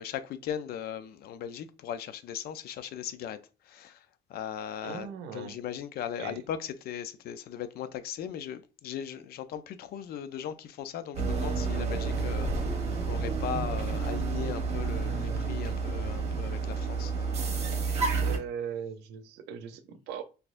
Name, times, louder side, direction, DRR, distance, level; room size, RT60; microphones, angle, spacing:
voice 1, 0.0-17.4, left 9 dB, 65° left, 0.5 m, -38 dB
voice 2, 4.8-5.6 6.2-6.4 18.2-20.2, right 7 dB, 85° right, 0.6 m, -39 dB
sound 1, 11.1-18.4, right 4 dB, 40° right, 1.1 m, -30 dB
4.0 x 2.7 x 2.5 m
cardioid pair, 110°, 17 cm